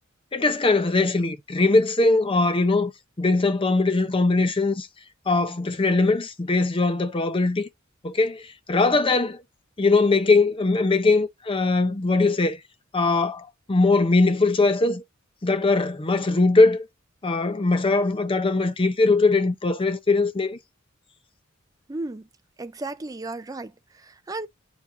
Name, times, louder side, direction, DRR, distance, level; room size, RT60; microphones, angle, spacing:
voice 1, 0.3-2.9 3.2-4.9 5.3-7.7 8.0-9.4 9.8-12.6 12.9-15.0 15.4-16.9 17.2-20.6, left 3 dB, 25° left, 0.6 m, -21 dB
voice 2, 21.9-22.3 22.6-24.5, right 2 dB, 15° right, 0.5 m, -34 dB
8.4 x 4.7 x 2.5 m
head